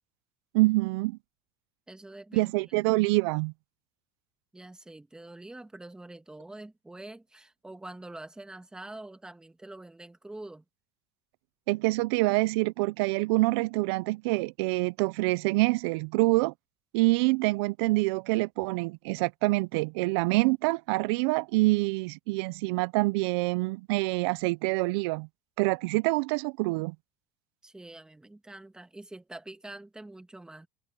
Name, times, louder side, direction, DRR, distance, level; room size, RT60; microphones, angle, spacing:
voice 1, 0.5-1.2 2.3-3.5 11.7-16.5 16.9-25.3 25.6-26.9, right 23 dB, 75° right, 0.4 m, -26 dB
voice 2, 1.9-2.7 4.5-10.6 27.6-30.7, right 2 dB, 5° right, 1.5 m, -45 dB
cardioid pair, 160°, 14 cm